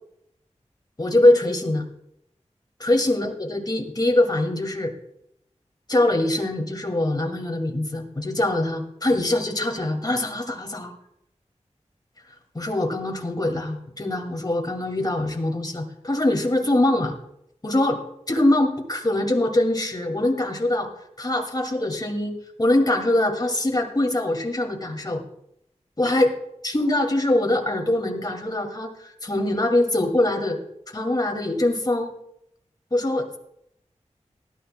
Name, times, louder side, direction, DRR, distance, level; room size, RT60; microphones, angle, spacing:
voice 1, 1.0-1.8 2.8-4.9 5.9-10.9 12.5-17.1 17.6-18.0 18.3-20.9 21.2-25.2 26.0-26.3 26.6-30.6 30.9-32.1 32.9-33.4, left 1 dB, 35° left, 2 dB, 2.1 m, -23 dB
19.5 x 12.0 x 2.2 m, 0.77 s
wide cardioid pair, 75°, 12 cm